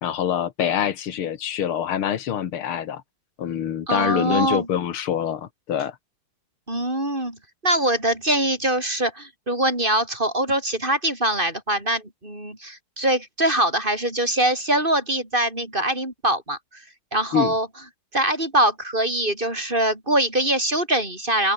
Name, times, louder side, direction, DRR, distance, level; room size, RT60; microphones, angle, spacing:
voice 1, 0.0-3.0 3.4-6.0 17.3-17.6, left 9 dB, 90° left, 2.4 m, -25 dB
voice 2, 3.9-4.7 6.7-7.4 7.6-16.8 17.1-17.7 18.1-21.5, right 1 dB, 25° right, 5.7 m, -23 dB
open air
omnidirectional pair, 2.3 m